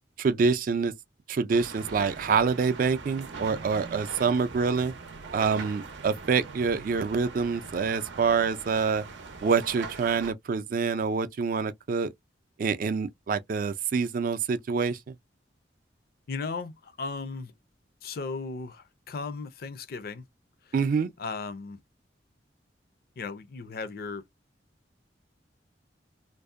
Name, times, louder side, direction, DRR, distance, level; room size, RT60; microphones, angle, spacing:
voice 1, 0.2-0.9 1.3-4.9 5.3-9.0 9.4-12.1 12.6-15.0 20.7-21.1, right 5 dB, 50° right, 0.3 m, -26 dB
sound 1, 1.5-10.3, right 4 dB, 85° right, 0.6 m, -42 dB
voice 2, 16.3-17.5 18.0-20.2 20.7-20.8 21.2-21.8 23.2-24.2, left 4 dB, 55° left, 0.4 m, -36 dB
2.6 x 2.0 x 2.4 m
head